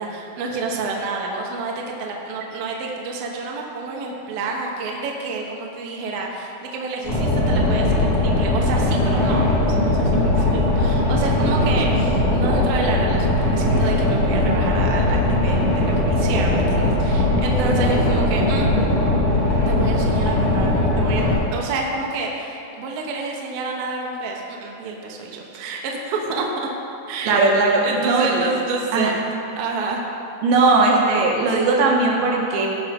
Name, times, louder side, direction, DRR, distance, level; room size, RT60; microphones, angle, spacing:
voice 1, 0.0-18.7 19.7-26.7 27.1-27.4 27.8-29.3 29.6-30.1, right 3 dB, 70° right, -1 dB, 2.6 m, -29 dB
Boat Water vehicle, 7.0-21.3, left 1 dB, 30° left, 2.1 m, -19 dB
voice 2, 27.3-28.4 28.9-29.1 30.4-32.7, right 3 dB, 85° right, -2 dB, 3.6 m, -18 dB
16.5 x 5.7 x 5.2 m, 2.7 s
omnidirectional pair, 5.1 m